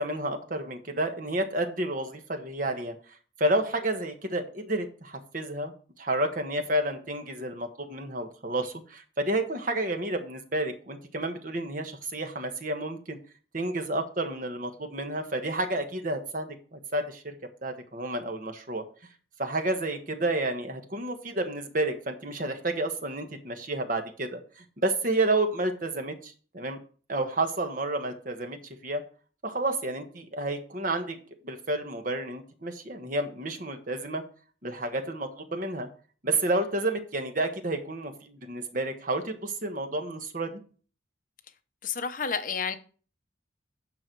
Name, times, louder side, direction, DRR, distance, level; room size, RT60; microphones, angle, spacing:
voice 1, 0.0-2.9 3.4-5.7 6.0-13.2 13.5-17.3 17.6-18.8 19.4-26.8 27.1-29.0 29.4-31.2 31.4-34.2 34.6-35.9 36.2-40.5, right 2 dB, 45° right, 1.3 m, -30 dB
voice 2, 41.8-42.8, left 6 dB, 45° left, 0.8 m, -30 dB
9.6 x 6.2 x 4.6 m
head